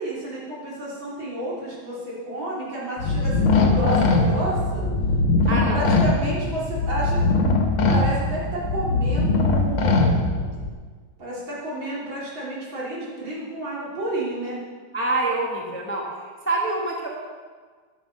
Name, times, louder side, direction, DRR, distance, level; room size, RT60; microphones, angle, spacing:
voice 1, 0.0-4.9 5.4-7.2 7.9-10.3 11.2-14.6, right 1 dB, 65° right, -6 dB, 4.5 m, -30 dB
sound 1, 3.0-10.7, left 3 dB, 75° left, 2.2 m, -21 dB
voice 2, 5.5-5.8 14.9-16.1 16.4-17.1, right 2 dB, 5° left, -2 dB, 1.5 m, -25 dB
13.5 x 11.0 x 5.6 m, 1.5 s
omnidirectional pair, 2.3 m